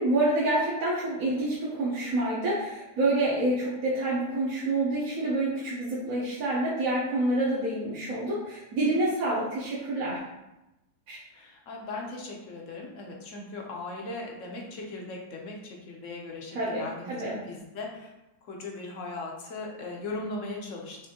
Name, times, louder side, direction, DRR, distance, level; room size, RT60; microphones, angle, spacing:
voice 1, 0.0-10.2 11.1-11.2 16.5-17.4, right 2 dB, 60° right, -9 dB, 1.3 m, -27 dB
voice 2, 11.3-18.1 18.4-21.0, left 2 dB, 60° left, 0 dB, 1.0 m, -38 dB
5.9 x 2.7 x 2.8 m, 0.97 s
omnidirectional pair, 1.7 m